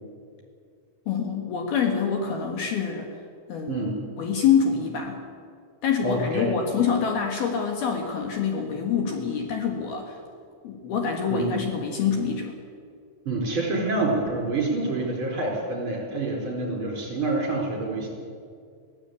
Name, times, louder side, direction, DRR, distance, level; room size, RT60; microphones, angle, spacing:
voice 1, 1.1-3.1 3.5-3.9 4.2-5.2 5.8-10.2 10.6-12.6, left 6 dB, 60° left, 2 dB, 3.3 m, -26 dB
voice 2, 3.7-4.0 6.0-6.4 11.3-11.5 13.2-18.1, right 2 dB, 30° right, -1 dB, 5.0 m, -27 dB
23.5 x 16.0 x 8.6 m, 2.2 s
omnidirectional pair, 5.3 m